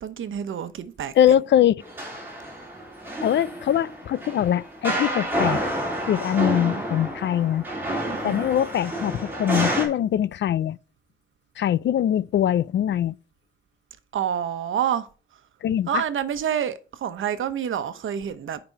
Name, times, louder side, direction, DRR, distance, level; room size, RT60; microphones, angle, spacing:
voice 1, 0.0-1.1 6.5-6.8 8.0-8.5 14.1-15.1 15.9-18.6, right 9 dB, 85° right, 1.0 m, -28 dB
voice 2, 1.2-1.8 3.2-5.6 6.1-7.6 8.2-10.8 11.6-13.2 15.6-16.0, left 10 dB, 65° left, 0.4 m, -22 dB
sound 1, 1.8-9.9, right 1 dB, 10° right, 4.1 m, -29 dB
9.9 x 5.2 x 4.5 m
wide cardioid pair, 165°, 20 cm